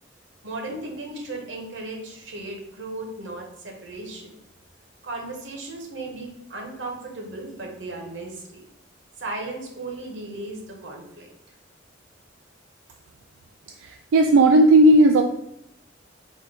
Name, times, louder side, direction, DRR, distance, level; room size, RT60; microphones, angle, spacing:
voice 1, 0.4-4.4 5.0-8.6 9.2-11.3, right 2 dB, 65° right, 1 dB, 1.0 m, -36 dB
voice 2, 13.8-15.2, right 1 dB, 90° right, 4 dB, 0.3 m, -15 dB
4.3 x 2.3 x 4.7 m, 0.80 s
head